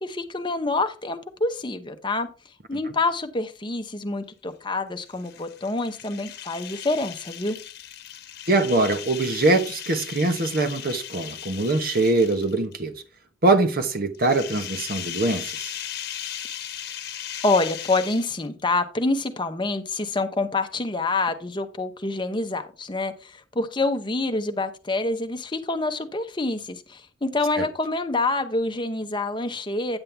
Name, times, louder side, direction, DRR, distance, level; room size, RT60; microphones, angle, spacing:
voice 1, 0.0-2.3 2.7-7.6 17.4-30.0, left 2 dB, 25° left, 0.8 m, -27 dB
sound 1, 5.0-12.7 14.1-18.6, left 10 dB, 50° left, 1.1 m, -37 dB
voice 2, 8.5-12.9 13.4-15.7 27.6-27.7, right 2 dB, 45° right, 1.1 m, -23 dB
8.9 x 7.5 x 3.4 m
head